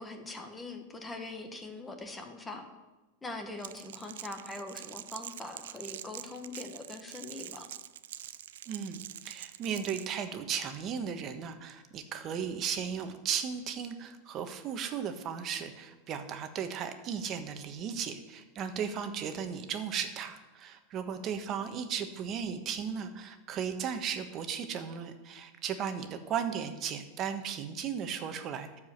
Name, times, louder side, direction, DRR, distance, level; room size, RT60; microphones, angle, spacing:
voice 1, 0.0-2.7 3.2-7.7 26.3-26.5, left 2 dB, 15° left, 5 dB, 1.3 m, -42 dB
Crackle, 3.6-10.1, right 12 dB, 80° right, 0.4 m, -45 dB
voice 2, 8.7-28.8, right 7 dB, 35° right, 8 dB, 1.2 m, -36 dB
12.5 x 4.9 x 7.2 m, 1.1 s
hypercardioid pair, 125°, 0 cm